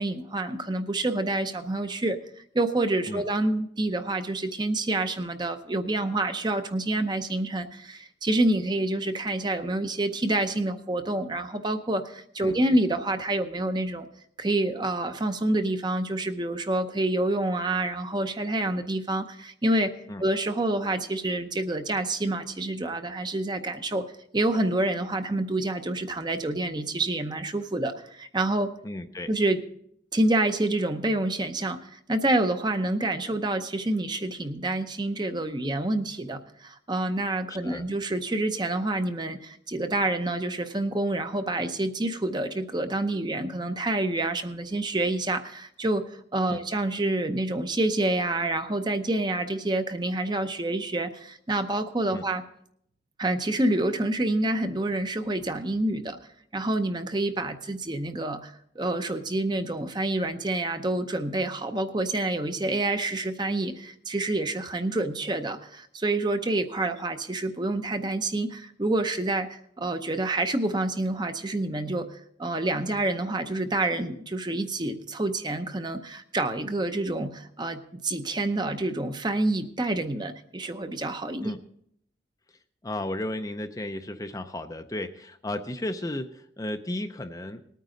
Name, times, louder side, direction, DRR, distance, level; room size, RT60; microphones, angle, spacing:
voice 1, 0.0-2.2 2.5-14.1 14.4-19.9 20.2-24.0 24.3-28.7 29.3-29.6 30.1-52.4 53.2-56.2 56.5-81.5, right 2 dB, 25° right, 8 dB, 0.7 m, -27 dB
voice 2, 28.8-29.3 37.6-37.8 46.5-46.6 52.1-52.2 81.4-81.6 82.8-87.6, left 1 dB, 20° left, 7 dB, 0.5 m, -34 dB
19.5 x 9.2 x 3.8 m, 0.69 s
head